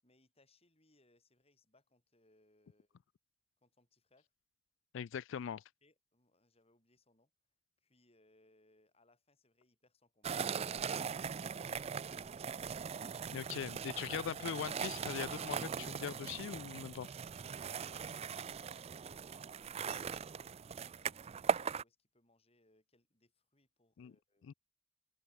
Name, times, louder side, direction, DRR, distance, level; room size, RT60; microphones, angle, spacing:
voice 1, 0.0-3.0 3.6-4.3 5.8-7.3 7.8-11.4 12.1-12.7 17.0-24.5, left 2 dB, 30° left, 7.9 m, -72 dB
voice 2, 4.9-5.6 13.3-17.1 24.0-24.1 24.4-24.5, left 8 dB, 65° left, 0.3 m, -41 dB
sound 1, 10.2-21.8, right 6 dB, 30° right, 0.4 m, -40 dB
head